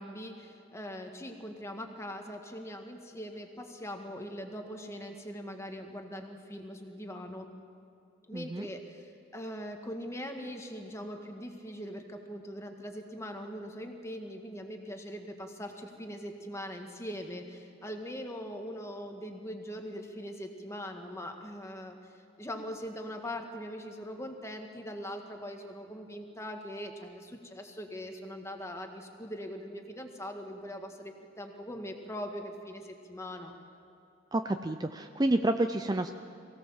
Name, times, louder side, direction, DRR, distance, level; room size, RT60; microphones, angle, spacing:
voice 1, 0.0-7.5 8.3-33.6, equal, 15° left, 4 dB, 1.8 m, -41 dB
voice 2, 8.3-8.7 34.3-36.1, right 1 dB, 20° right, 8 dB, 0.5 m, -29 dB
23.5 x 17.0 x 7.4 m, 2.7 s
head